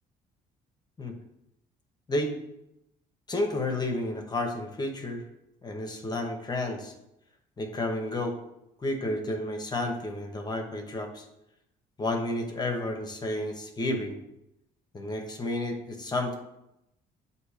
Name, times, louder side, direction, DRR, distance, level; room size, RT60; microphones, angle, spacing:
voice 1, 2.1-2.4 3.3-5.2 5.6-6.9 7.6-8.4 8.8-11.3 12.0-14.2 14.9-16.3, left 1 dB, 25° left, 3 dB, 0.8 m, -31 dB
7.6 x 2.7 x 4.9 m, 0.87 s
cardioid pair, 110°, 17 cm